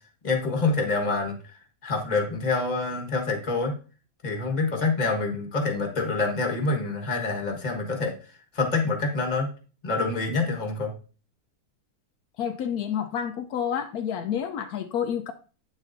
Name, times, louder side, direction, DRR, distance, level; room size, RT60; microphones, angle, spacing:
voice 1, 0.2-1.5 1.8-3.8 4.2-8.1 8.5-9.5 9.8-10.9, left 3 dB, 30° left, 1.4 m, -26 dB
voice 2, 12.4-15.3, left 8 dB, 75° left, 1.1 m, -29 dB
8.9 x 7.2 x 2.6 m
omnidirectional pair, 1.6 m